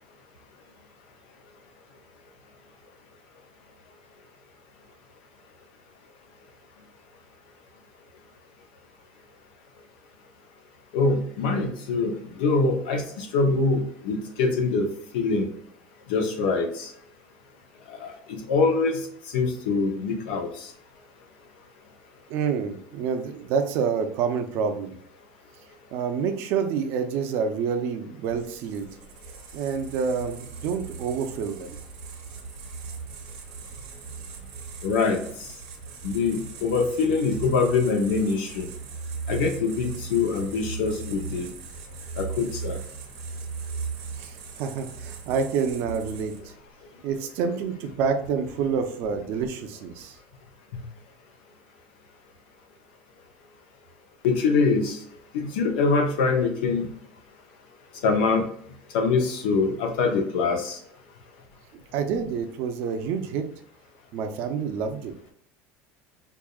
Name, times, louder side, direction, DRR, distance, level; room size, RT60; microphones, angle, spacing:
voice 1, 10.9-14.9 15.1-15.5 16.1-16.9 17.9-19.0 19.3-20.5 34.8-35.2 36.0-38.7 39.3-41.5 42.2-42.8 50.7-50.8 54.2-55.0 55.3-56.9 58.0-58.4 58.9-60.8, left 4 dB, 90° left, 3 dB, 1.0 m, -24 dB
voice 2, 22.3-24.9 25.9-28.9 29.5-31.8 44.2-46.3 47.0-50.2 61.9-63.5 64.1-65.1, right 6 dB, 50° right, 6 dB, 0.5 m, -28 dB
sound 1, 28.2-46.6, right 5 dB, 65° right, 0.9 m, -38 dB
4.8 x 2.6 x 2.3 m, 0.63 s
cardioid pair, 175°, 5 cm